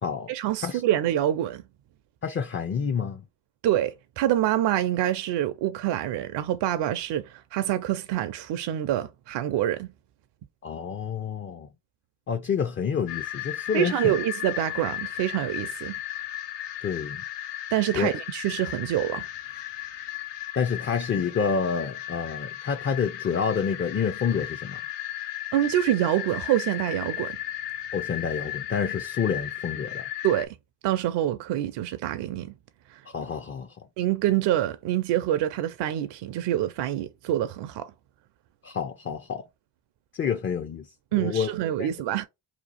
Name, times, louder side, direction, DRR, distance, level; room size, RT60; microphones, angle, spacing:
voice 1, 0.3-1.6 3.6-9.9 13.7-15.9 17.7-19.2 25.5-27.4 30.2-30.5 30.8-32.5 32.9-33.0 34.0-37.9 41.1-42.3, right 12 dB, 65° right, 0.5 m, -26 dB
voice 2, 2.2-3.2 10.6-11.7 12.3-14.1 16.8-17.2 17.9-18.1 20.6-24.8 27.9-30.0 33.1-33.7 38.6-39.4 40.1-41.5 41.8-41.9, left 6 dB, 30° left, 0.4 m, -28 dB
sound 1, 13.1-30.5, left 12 dB, 65° left, 0.7 m, -35 dB
2.9 x 2.3 x 4.1 m
supercardioid pair, 65°, 45 cm